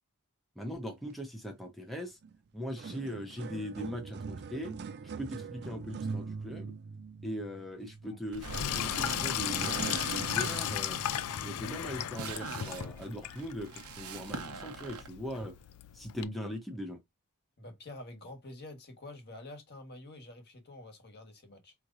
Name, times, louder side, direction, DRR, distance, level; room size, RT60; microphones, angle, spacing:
voice 1, 0.6-2.2 2.5-4.8 5.2-6.7 7.2-8.5 8.7-11.0 11.4-13.7 14.0-15.5 15.9-17.0, equal, ahead, 0.7 m, -40 dB
sound 1, 2.2-2.4 2.6-12.3 13.0-13.1 13.9-14.0, right 4 dB, 50° right, 0.4 m, -42 dB
sound 2, 8.3-15.1, right 4 dB, 85° right, 1.0 m, -43 dB
Sink (filling or washing), 8.4-16.2, left 10 dB, 85° left, 0.4 m, -36 dB
voice 2, 17.6-21.7, left 2 dB, 45° left, 1.3 m, -48 dB
5.1 x 3.1 x 2.5 m
head